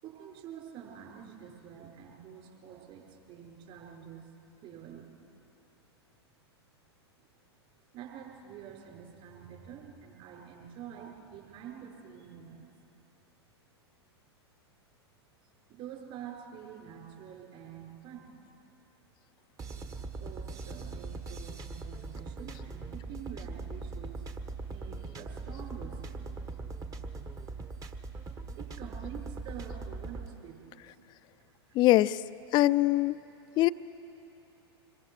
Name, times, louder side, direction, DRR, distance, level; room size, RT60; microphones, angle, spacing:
voice 1, 0.0-4.3 4.6-5.1 7.9-12.7 15.7-18.3 20.2-24.4 24.7-26.3 28.5-31.0 31.7-31.8, right 8 dB, 40° right, -1 dB, 5.3 m, -47 dB
sound 1, 19.6-30.3, right 3 dB, 25° right, 1.4 m, -41 dB
voice 2, 31.8-32.2 32.5-33.2 33.6-33.7, left 16 dB, 35° left, 15 dB, 0.5 m, -22 dB
26.0 x 22.5 x 6.4 m, 2.9 s
hypercardioid pair, 100°, 14 cm